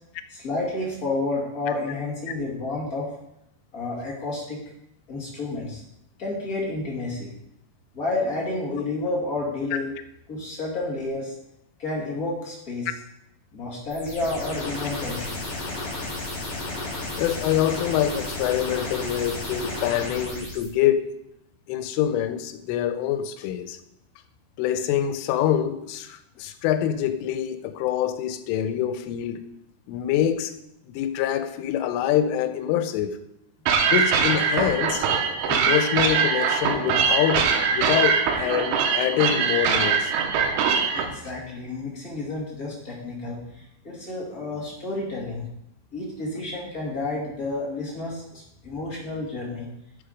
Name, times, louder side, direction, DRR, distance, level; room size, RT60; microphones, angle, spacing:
voice 1, 0.3-3.1 3.7-4.6 5.1-5.8 6.2-7.3 7.9-9.9 10.3-11.3 11.8-12.9 13.5-15.5 40.9-45.5 45.9-49.7, left 2 dB, 70° left, -4 dB, 0.8 m, -30 dB
sound 1, 13.9-20.7, left 2 dB, 40° left, 4.7 m, -33 dB
voice 2, 17.2-21.1 21.7-23.8 24.6-29.4 29.9-30.6 30.9-33.2 33.9-35.1 35.5-40.1, left 10 dB, 90° left, 10 dB, 3.3 m, -25 dB
sound 2, 33.7-41.1, right 6 dB, 80° right, 3.5 m, -22 dB
9.7 x 7.1 x 5.1 m, 0.80 s
omnidirectional pair, 5.5 m